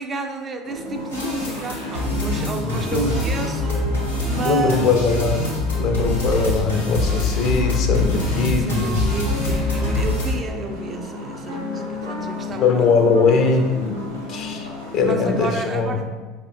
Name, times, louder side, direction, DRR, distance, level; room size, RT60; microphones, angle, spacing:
voice 1, 0.0-3.8 4.3-4.8 8.6-12.9 14.5-14.6 15.0-16.1, right 4 dB, 30° right, 5 dB, 0.3 m, -31 dB
sound 1, 0.6-15.5, left 2 dB, 85° right, 0.7 m, -33 dB
sound 2, 1.1-10.3, left 2 dB, 85° left, 0.7 m, -24 dB
voice 2, 2.9-3.2 4.4-5.4 5.8-9.0 12.6-14.0 14.3-16.0, left 4 dB, 50° left, 4 dB, 0.4 m, -20 dB
4.9 x 2.1 x 2.7 m, 1.3 s
figure-of-eight pair, 65°, 0 cm